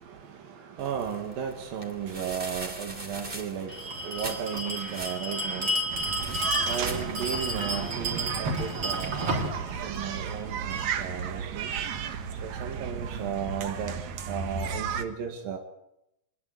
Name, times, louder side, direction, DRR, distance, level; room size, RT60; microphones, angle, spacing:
voice 1, 0.1-9.5 9.8-11.8 12.4-14.0 14.3-15.6, right 8 dB, 85° right, 3 dB, 3.7 m, -35 dB
sound 1, 0.8-7.7, right 2 dB, 15° right, 2.9 m, -42 dB
Bell, 3.7-10.9, right 1 dB, 40° right, 4.5 m, -32 dB
sound 2, 5.9-15.0, right 7 dB, 60° right, 2.5 m, -34 dB
23.0 x 21.5 x 8.1 m, 0.82 s
omnidirectional pair, 4.0 m